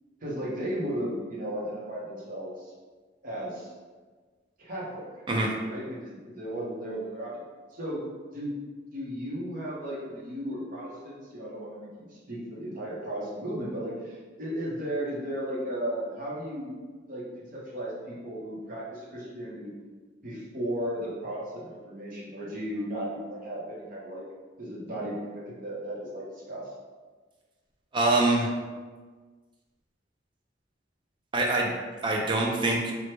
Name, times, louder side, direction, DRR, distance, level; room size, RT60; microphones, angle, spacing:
voice 1, 0.2-2.7 3.2-3.7 4.6-5.2 5.7-7.4 7.7-8.6 8.9-16.8 17.1-19.7 20.2-24.2 24.6-26.7, right 1 dB, 45° right, -5 dB, 0.7 m, -35 dB
voice 2, 27.9-28.5 31.3-31.7 32.0-32.9, right 2 dB, 25° right, -1 dB, 0.4 m, -24 dB
2.9 x 2.1 x 3.2 m, 1.4 s
head